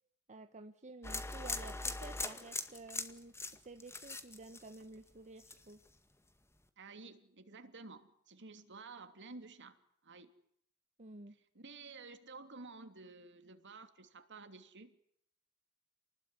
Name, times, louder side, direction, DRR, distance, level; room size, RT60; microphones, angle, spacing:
voice 1, 0.3-3.3 3.6-5.8 11.0-11.4, right 2 dB, 35° right, 7 dB, 1.2 m, -52 dB
sound 1, 1.0-5.1 5.4-5.9, left 3 dB, 10° left, 1.9 m, -41 dB
voice 2, 6.8-10.3 11.5-15.0, right 3 dB, 55° right, 8 dB, 3.0 m, -52 dB
29.0 x 20.0 x 9.8 m, 0.69 s
head